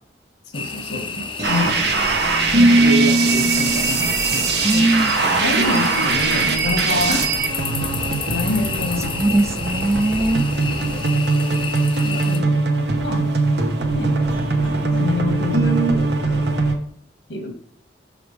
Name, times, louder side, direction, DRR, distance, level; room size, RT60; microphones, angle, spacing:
voice 1, 0.5-1.8 2.5-4.9 5.3-7.3 8.3-9.1 10.6-11.1 12.0-12.5 13.0-13.3 13.9-14.1 14.6-16.5 17.3-17.6, left 1 dB, 85° left, 3 dB, 1.5 m, -27 dB
sound 1, 0.5-12.4, left 5 dB, 30° left, 0.6 m, -31 dB
sound 2, 1.2-2.1 2.5-4.7 5.3-7.8 8.1-8.2 8.5-8.7 10.1-10.2 10.7-10.8 14.3-15.0 15.5-15.9, right 1 dB, 40° right, 1.4 m, -22 dB
sound 3, 1.4-16.7, right 3 dB, 75° right, 0.9 m, -21 dB
voice 2, 4.6-5.5 9.0-10.5, right 2 dB, 15° right, 9 dB, 0.3 m, -20 dB
6.0 x 5.0 x 3.3 m, 0.68 s
head